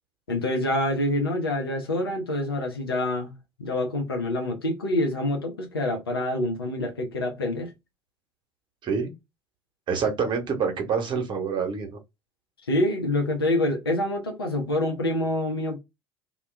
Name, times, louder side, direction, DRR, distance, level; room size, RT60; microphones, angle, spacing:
voice 1, 0.3-3.3 3.6-7.7 12.7-15.8, left 1 dB, 80° left, 0.7 m, -26 dB
voice 2, 9.9-12.0, right 5 dB, 40° right, 0.9 m, -26 dB
2.2 x 2.2 x 3.1 m
figure-of-eight pair, 60°, 12 cm